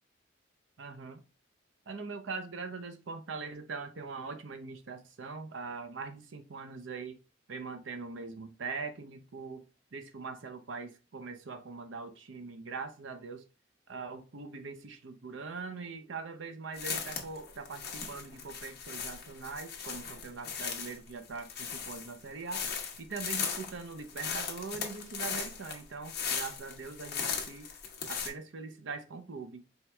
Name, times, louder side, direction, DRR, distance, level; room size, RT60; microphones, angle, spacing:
voice 1, 0.8-1.2 1.9-7.2 7.5-9.6 9.9-13.4 13.9-22.6 23.0-27.7 28.1-29.7, right 4 dB, 85° right, 0.6 m, -42 dB
sound 1, 16.7-28.3, left 6 dB, 60° left, 0.9 m, -37 dB
4.4 x 2.3 x 3.3 m
head